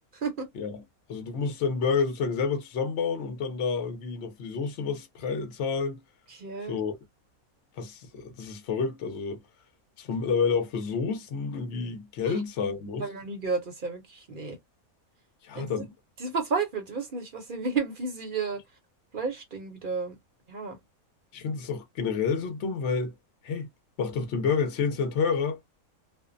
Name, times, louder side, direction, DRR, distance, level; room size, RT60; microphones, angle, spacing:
voice 1, 0.1-0.5 6.3-6.8 12.2-12.4 13.0-14.6 15.5-15.8 16.2-18.6 19.1-20.2 20.5-20.8, right 4 dB, 50° right, 0.7 m, -32 dB
voice 2, 1.1-6.0 6.7-6.9 7.8-9.4 10.0-13.1 15.4-15.9 21.3-23.1 23.4-23.7 24.0-25.6, left 5 dB, 60° left, 0.9 m, -29 dB
2.6 x 2.0 x 2.5 m
omnidirectional pair, 1.4 m